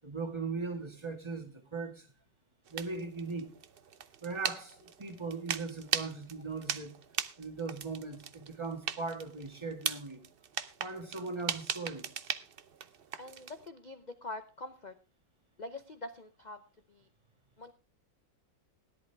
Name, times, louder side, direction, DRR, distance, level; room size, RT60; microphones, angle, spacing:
voice 1, 0.0-2.1 2.7-3.5 4.2-7.0 7.4-10.2 10.8-12.1, right 4 dB, 15° right, 1.7 m, -39 dB
sound 1, 2.7-13.7, right 7 dB, 65° right, 0.5 m, -39 dB
voice 2, 13.2-14.9 15.6-16.6 16.9-17.1 17.6-17.7, left 2 dB, 75° left, 0.4 m, -44 dB
17.5 x 11.0 x 3.3 m
omnidirectional pair, 2.0 m